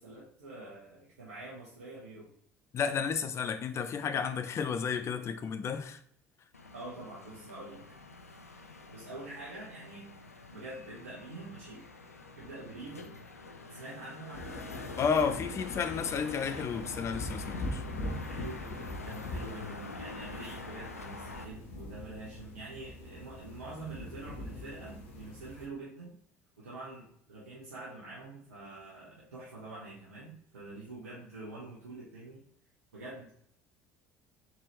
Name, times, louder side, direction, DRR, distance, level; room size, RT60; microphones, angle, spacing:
voice 1, 0.0-2.3 6.7-7.9 8.9-10.1 10.5-11.8 12.4-13.1 13.7-14.6 18.2-26.2 26.6-32.4 32.9-33.3, right 2 dB, 80° right, -6 dB, 1.0 m, -46 dB
voice 2, 2.7-6.0 15.0-17.8, left 6 dB, 35° left, 10 dB, 0.5 m, -32 dB
sound 1, 6.5-21.4, left 3 dB, 90° left, 0.4 m, -46 dB
sound 2, 14.3-25.7, left 1 dB, 65° left, 0.9 m, -42 dB
4.1 x 3.8 x 3.0 m, 0.63 s
figure-of-eight pair, 60°, 8 cm